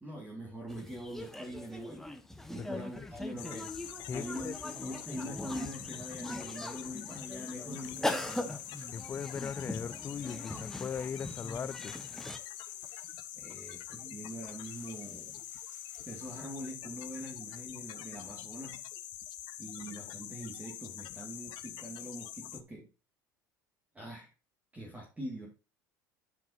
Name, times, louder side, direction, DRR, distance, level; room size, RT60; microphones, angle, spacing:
voice 1, 0.0-2.1 2.5-8.6 13.3-15.4 16.0-18.8 19.6-22.9 23.9-24.3 24.7-25.5, equal, 15° right, 2.2 m, -43 dB
sound 1, 0.7-12.4, left 1 dB, 5° left, 1.1 m, -41 dB
voice 2, 2.6-3.1 4.1-4.6 8.9-11.9, left 7 dB, 20° left, 0.4 m, -39 dB
sound 2, 3.4-22.6, left 13 dB, 50° left, 0.9 m, -45 dB
sound 3, 7.2-17.6, right 2 dB, 75° right, 2.6 m, -65 dB
12.5 x 4.8 x 2.8 m
figure-of-eight pair, 70°, 10 cm